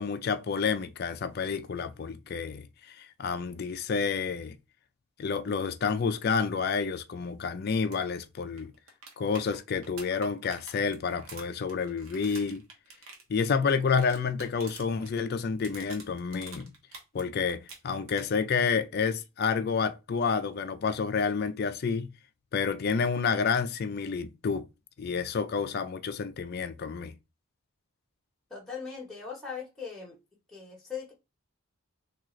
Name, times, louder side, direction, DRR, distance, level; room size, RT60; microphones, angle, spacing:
voice 1, 0.0-4.5 5.2-8.7 9.2-12.6 13.3-16.7 17.1-22.1 22.5-24.6 25.0-27.1, left 5 dB, 45° left, 0.3 m, -29 dB
sound 1, 7.8-8.0 8.3-8.4 8.6-15.1 15.4-17.2 17.5-18.4 20.5-20.6, right 3 dB, 70° right, 1.0 m, -48 dB
voice 2, 28.5-30.2 30.5-31.1, left 6 dB, ahead, 0.9 m, -39 dB
3.7 x 2.4 x 3.0 m
head